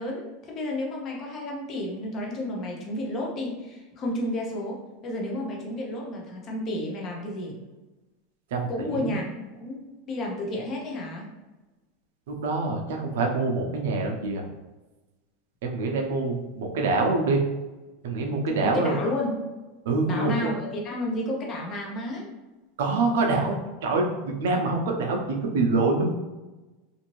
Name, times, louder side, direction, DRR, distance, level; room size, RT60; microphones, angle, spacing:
voice 1, 0.0-7.6 8.7-9.2 9.6-9.8 10.1-11.3 18.6-19.3 20.1-22.3, left 1 dB, 25° left, -1 dB, 0.6 m, -31 dB
voice 2, 8.5-9.1 12.3-14.5 15.6-17.4 18.0-19.0 19.9-20.5 22.8-26.1, right 3 dB, 80° right, 2 dB, 0.5 m, -25 dB
2.6 x 2.6 x 3.0 m, 1.1 s
supercardioid pair, 165°, 0 cm